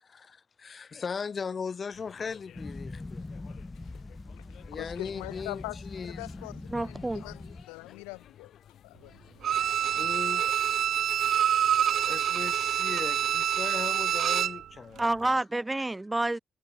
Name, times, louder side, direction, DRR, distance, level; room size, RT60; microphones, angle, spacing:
voice 1, 0.0-3.3 4.7-6.3 9.9-10.6 12.0-15.2, left 5 dB, 50° left, 2.7 m, -38 dB
sound 1, 1.9-10.4, left 10 dB, 70° left, 7.8 m, -54 dB
sound 2, 2.6-7.6, left 2 dB, 25° left, 2.2 m, -42 dB
voice 2, 4.7-5.8 6.2-7.4 7.7-8.5 8.8-9.1, left 37 dB, 90° left, 0.4 m, -42 dB
voice 3, 6.7-7.2 15.0-16.4, right 2 dB, 20° right, 0.6 m, -28 dB
Bowed string instrument, 9.4-14.6 15.0-15.1, right 10 dB, 70° right, 0.5 m, -26 dB
hypercardioid pair, 45°, 0 cm